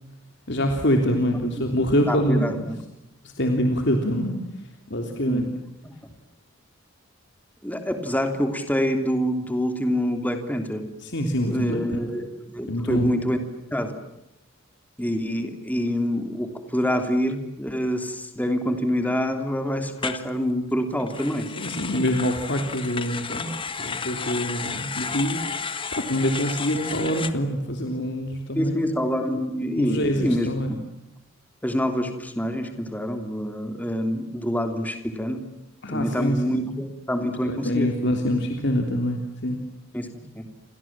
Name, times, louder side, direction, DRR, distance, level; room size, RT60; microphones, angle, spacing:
voice 1, 0.5-2.7 3.4-4.4 4.9-5.5 11.0-12.0 12.7-13.1 21.5-25.4 25.9-28.9 29.8-30.7 35.8-36.6 37.4-39.6, equal, 60° left, 4 dB, 3.2 m, -25 dB
voice 2, 2.1-2.8 5.3-5.5 5.8-5.9 7.6-10.8 11.5-13.4 13.7-13.9 15.0-21.5 28.5-30.8 31.6-35.4 35.9-37.9 39.9-40.4, equal, 10° left, 6 dB, 3.2 m, -26 dB
sound 1, 20.0-20.3 21.0-27.3, left 5 dB, 25° left, 1.5 m, -32 dB
30.0 x 26.5 x 7.5 m, 0.90 s
head